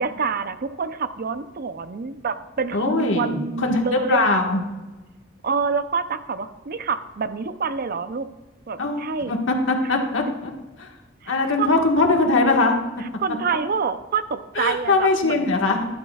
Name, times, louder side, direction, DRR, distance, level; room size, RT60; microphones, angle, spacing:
voice 1, 0.0-4.4 5.4-8.3 8.7-9.4 11.2-11.7 13.0-15.5, right 5 dB, 50° right, 11 dB, 0.6 m, -27 dB
voice 2, 2.7-4.6 8.8-10.5 10.8-10.9 11.3-12.7 14.6-15.9, left 2 dB, 85° left, 2 dB, 1.6 m, -21 dB
15.0 x 11.5 x 2.4 m, 1.2 s
head